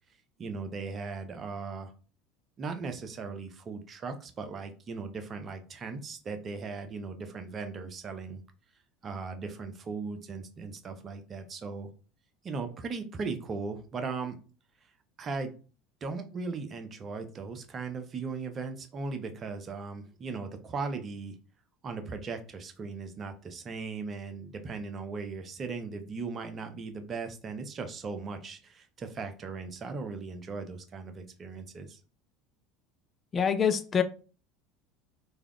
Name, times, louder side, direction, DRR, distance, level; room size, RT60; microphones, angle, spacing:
voice 1, 0.4-1.9 2.6-8.4 9.0-11.9 12.4-14.4 15.2-15.5 16.0-21.4 21.8-32.0, right 4 dB, 30° right, 0.5 m, -38 dB
voice 2, 33.3-34.0, left 7 dB, 30° left, 0.3 m, -25 dB
3.3 x 2.2 x 2.3 m
figure-of-eight pair, 70°, 0 cm